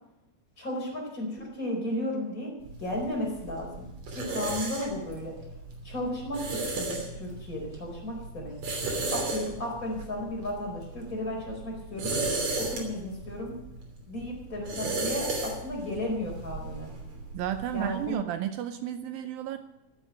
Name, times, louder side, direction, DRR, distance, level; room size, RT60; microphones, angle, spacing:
voice 1, 0.6-2.5 2.8-3.9 4.1-5.3 5.8-8.5 9.1-12.1 12.6-13.5 14.1-16.9 17.7-18.2, left 1 dB, 20° left, -2 dB, 5.1 m, -34 dB
sound 1, 2.6-18.1, right 2 dB, 50° right, 4.2 m, -35 dB
voice 2, 17.3-19.6, right 10 dB, 80° right, 9 dB, 2.4 m, -32 dB
15.0 x 9.0 x 9.6 m, 0.90 s
omnidirectional pair, 4.3 m